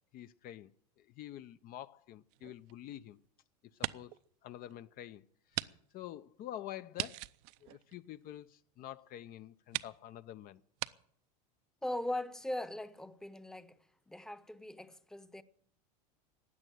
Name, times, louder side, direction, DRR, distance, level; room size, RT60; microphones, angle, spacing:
voice 1, 0.1-0.7 1.0-3.2 3.8-4.1 4.4-5.2 5.5-7.2 7.6-10.6, left 12 dB, 45° left, 0.6 m, -47 dB
sound 1, 2.3-3.3 3.7-4.3 4.7-4.8 5.5-5.7 6.0-6.1 6.9-8.5 9.2-9.3 9.7-10.0 10.8-10.9, right 19 dB, 60° right, 0.7 m, -40 dB
voice 2, 11.8-13.8 14.1-15.4, left 1 dB, 5° left, 0.9 m, -40 dB
16.0 x 9.9 x 9.2 m
hypercardioid pair, 100°, 20 cm